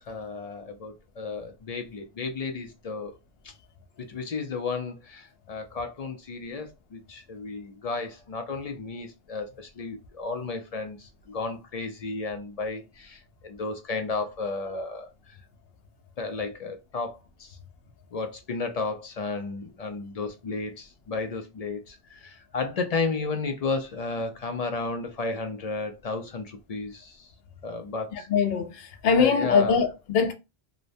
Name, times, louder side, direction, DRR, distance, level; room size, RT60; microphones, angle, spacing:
voice 1, 0.1-3.1 3.4-3.5 4.0-15.4 16.2-17.6 18.1-27.3 27.6-28.3 29.2-29.8, left 4 dB, 55° left, 0.4 m, -33 dB
voice 2, 28.3-30.3, left 5 dB, 75° left, 0.8 m, -22 dB
2.9 x 2.0 x 2.5 m
omnidirectional pair, 1.0 m